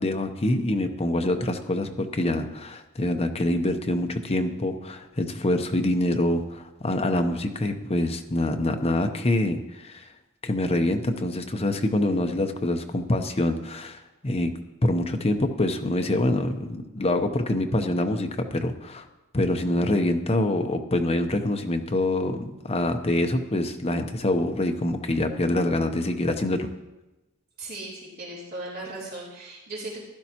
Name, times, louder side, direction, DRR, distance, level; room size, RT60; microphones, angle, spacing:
voice 1, 0.0-10.0 10.4-14.5 14.8-19.1 19.3-26.7, left 1 dB, 30° left, 5 dB, 0.8 m, -25 dB
voice 2, 27.6-30.0, right 2 dB, 45° right, -6 dB, 3.2 m, -37 dB
15.0 x 11.5 x 2.9 m, 1.0 s
head